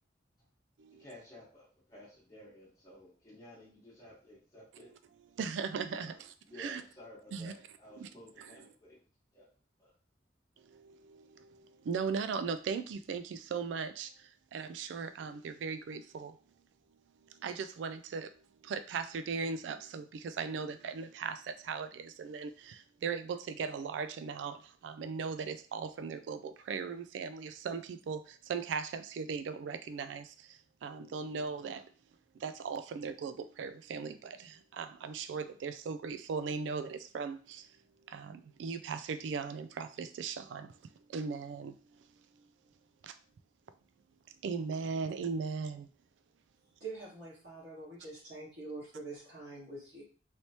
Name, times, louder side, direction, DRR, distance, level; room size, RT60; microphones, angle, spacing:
voice 1, 1.0-4.9 6.0-6.2 6.5-9.0 9.3-9.5 9.8-9.9, left 1 dB, 20° left, 1.1 m, -54 dB
voice 2, 5.4-6.8 7.3-7.5 8.0-8.1 8.4-8.5 10.6-16.4 17.3-31.9 32.4-37.7 38.1-40.7 41.1-41.8 43.0-43.2 44.4-45.9, right 5 dB, 85° right, 0.3 m, -38 dB
voice 3, 46.8-50.0, right 3 dB, 65° right, 1.7 m, -45 dB
3.2 x 3.0 x 2.8 m
head